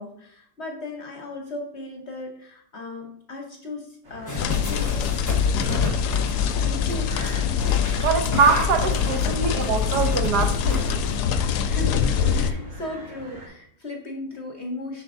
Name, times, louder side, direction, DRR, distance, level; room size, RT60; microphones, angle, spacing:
voice 1, 0.0-7.4 11.6-15.0, left 2 dB, 50° left, 1.0 m, -37 dB
sound 1, 4.0-13.5, equal, 45° right, 2.0 m, -43 dB
sound 2, 4.3-11.1, left 2 dB, 15° left, 0.7 m, -32 dB
sound 3, 4.4-12.5, left 7 dB, 70° left, 1.0 m, -24 dB
voice 2, 8.0-10.8, right 5 dB, 70° right, 1.2 m, -23 dB
7.1 x 5.5 x 2.6 m
omnidirectional pair, 1.9 m